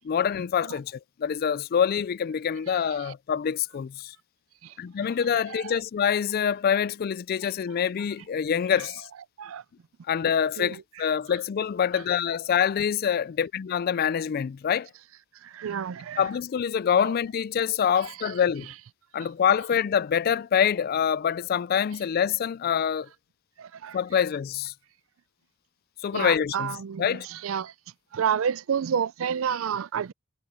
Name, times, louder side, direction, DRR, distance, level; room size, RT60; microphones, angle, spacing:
voice 1, 0.0-4.1 4.8-9.1 10.1-14.9 16.2-18.7 19.1-23.1 23.9-24.7 26.0-27.3, left 8 dB, 45° left, 0.3 m, -25 dB
voice 2, 2.7-3.1 4.6-4.7 5.5-5.8 9.4-9.6 10.6-10.8 15.4-16.2 17.0-17.1 18.0-18.3 23.6-24.0 26.1-27.7 28.1-30.1, right 7 dB, 70° right, 0.4 m, -30 dB
head